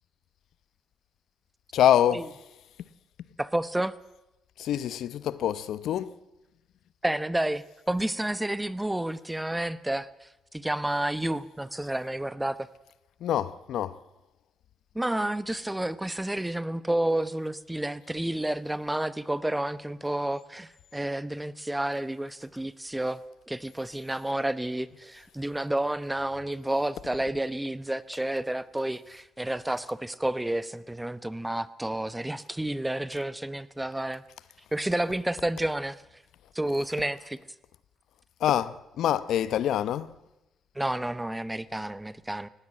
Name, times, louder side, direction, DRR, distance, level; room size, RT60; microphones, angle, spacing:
voice 1, 1.7-2.3 4.6-6.1 13.2-14.0 38.4-40.1, left 11 dB, 75° left, 0.8 m, -25 dB
voice 2, 3.4-3.9 7.0-12.7 14.9-23.2 23.5-34.2 34.7-36.0 36.5-37.4 40.7-42.5, right 1 dB, 10° right, 0.9 m, -30 dB
18.5 x 16.0 x 8.9 m
cardioid pair, 90°, 0 cm